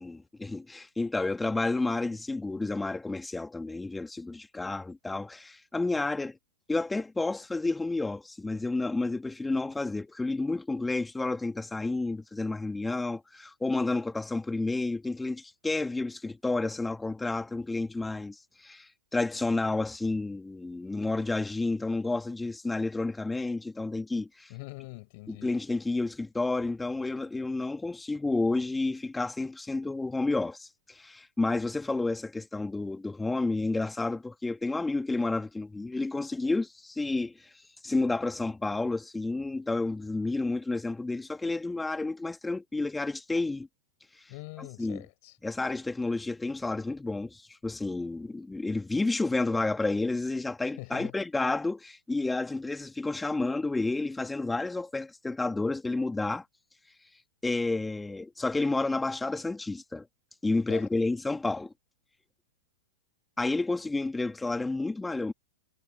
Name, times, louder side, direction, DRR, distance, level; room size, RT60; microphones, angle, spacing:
voice 1, 0.0-6.4 6.7-24.5 25.3-37.4 37.8-43.7 44.6-45.0 45.4-56.4 57.4-60.1 60.4-61.7 63.4-65.3, left 3 dB, 10° left, 2.7 m, -30 dB
voice 2, 24.5-25.6 44.3-45.4 50.8-51.1 60.7-60.9, left 27 dB, 45° left, 7.7 m, -43 dB
figure-of-eight pair, 105°, 0 cm